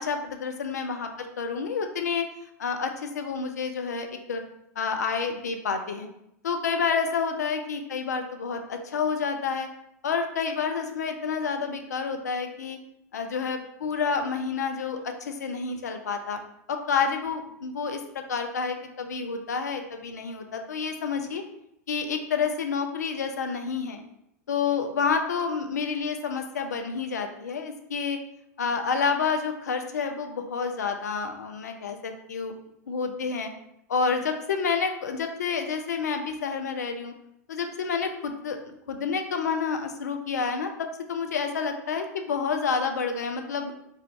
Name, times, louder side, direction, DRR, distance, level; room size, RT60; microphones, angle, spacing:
voice 1, 0.0-2.3 2.6-4.4 4.8-6.1 6.4-9.7 10.0-12.8 13.1-16.4 16.7-21.4 21.9-24.0 24.5-28.2 28.6-32.5 32.9-33.5 33.9-37.1 37.5-43.7, left 5 dB, 75° left, 5 dB, 0.4 m, -29 dB
2.6 x 2.2 x 3.7 m, 0.78 s
figure-of-eight pair, 90°, 9 cm